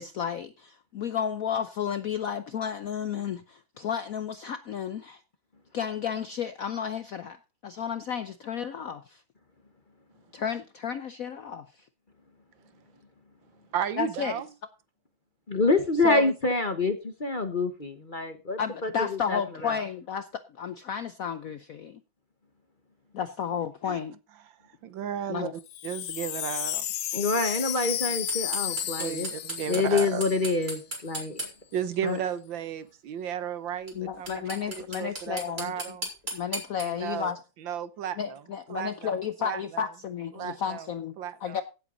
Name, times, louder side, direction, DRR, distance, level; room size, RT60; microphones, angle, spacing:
voice 1, 0.0-5.2 5.7-7.4 7.6-9.2 10.3-11.6 14.0-14.4 16.0-16.3 18.6-22.0 23.1-24.2 25.3-25.5 33.9-36.0 36.3-37.4 38.2-41.6, left 8 dB, 65° left, 0.8 m, -32 dB
voice 2, 13.7-14.5 23.9-24.0 24.8-25.5 25.8-26.9 29.0-30.3 31.7-36.1 36.8-37.3 37.6-38.4 38.7-39.9 40.3-40.9 41.2-41.6, right 9 dB, 70° right, 1.7 m, -34 dB
voice 3, 15.5-19.8 27.1-29.3 29.7-31.4 32.0-32.2, left 3 dB, 30° left, 1.0 m, -27 dB
Wind chime, 25.6-30.8 31.1-31.2 31.4-31.8, left 12 dB, 85° left, 1.7 m, -33 dB
sound 1, 28.3-31.5 33.9-34.0 34.3-36.8, right 1 dB, 20° right, 4.3 m, -34 dB
16.0 x 8.1 x 3.9 m
omnidirectional pair, 2.2 m